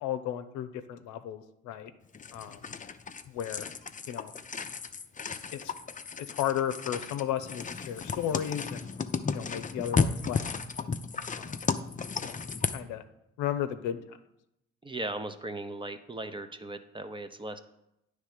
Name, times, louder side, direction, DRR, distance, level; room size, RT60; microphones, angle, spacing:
voice 1, 0.0-1.9 2.3-2.7 3.3-3.7 4.1-4.3 5.5-5.7 6.2-8.9 9.3-11.0 11.3-11.6 12.2-12.4 12.7-13.0 13.4-14.2, left 10 dB, 80° left, 10 dB, 0.6 m, -34 dB
sound 1, 2.1-12.8, left 5 dB, 25° left, 0.6 m, -34 dB
voice 2, 14.8-17.6, right 2 dB, 15° right, 9 dB, 0.8 m, -38 dB
9.5 x 3.4 x 6.6 m, 0.84 s
supercardioid pair, 60°, 29 cm